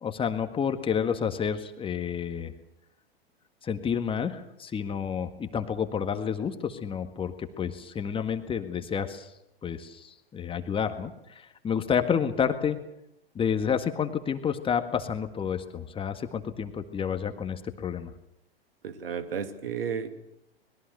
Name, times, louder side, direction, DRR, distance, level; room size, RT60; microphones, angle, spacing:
voice 1, 0.0-2.5 3.6-9.3 9.6-12.8 13.4-18.1, left 7 dB, 15° left, 7 dB, 1.7 m, -30 dB
voice 2, 18.8-20.1, right 7 dB, 65° right, 9 dB, 2.7 m, -32 dB
25.0 x 21.5 x 6.7 m, 0.83 s
figure-of-eight pair, 105°, 30 cm